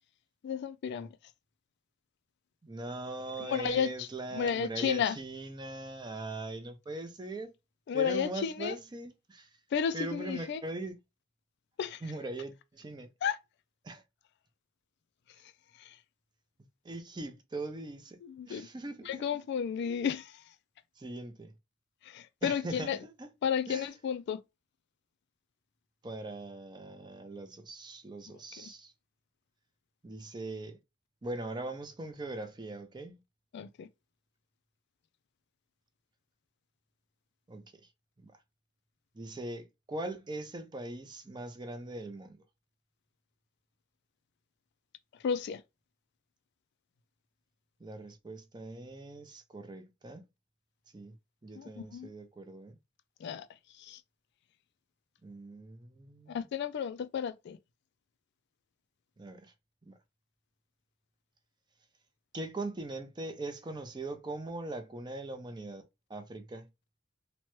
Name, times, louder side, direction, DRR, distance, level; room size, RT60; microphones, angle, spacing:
voice 1, 0.4-1.1 3.4-5.2 7.9-8.8 9.7-10.6 11.8-12.0 13.2-13.4 15.7-16.0 18.2-18.7 19.0-20.5 22.0-23.0 23.4-24.4 28.3-28.7 33.5-33.9 45.2-45.6 51.5-52.1 53.2-53.5 53.7-54.0 56.3-57.6, left 7 dB, 60° left, 0.3 m, -33 dB
voice 2, 2.6-7.5 7.9-9.5 9.9-11.0 12.0-13.1 13.8-14.0 16.8-18.2 18.5-19.3 21.0-21.5 22.4-23.3 23.7-23.9 26.0-28.9 30.0-30.8 31.2-33.2 37.5-37.6 38.2-38.3 39.1-42.4 47.8-50.2 50.9-51.1 51.4-52.8 55.2-56.4 59.2-59.5 59.9-60.0 62.3-65.8 66.1-66.7, right 2 dB, 20° right, 0.5 m, -41 dB
3.0 x 2.2 x 3.0 m
head